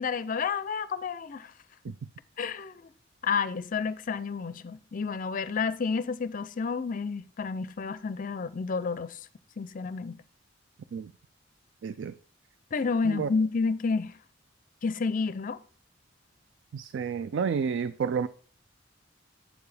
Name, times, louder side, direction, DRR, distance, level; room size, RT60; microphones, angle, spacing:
voice 1, 0.0-1.5 2.4-2.8 3.2-9.2 9.6-10.2 12.7-14.2 14.8-15.6, left 5 dB, 45° left, 0.5 m, -30 dB
voice 2, 11.8-12.1 13.0-13.3 16.7-18.3, right 6 dB, 65° right, 0.3 m, -30 dB
8.3 x 6.9 x 3.3 m
head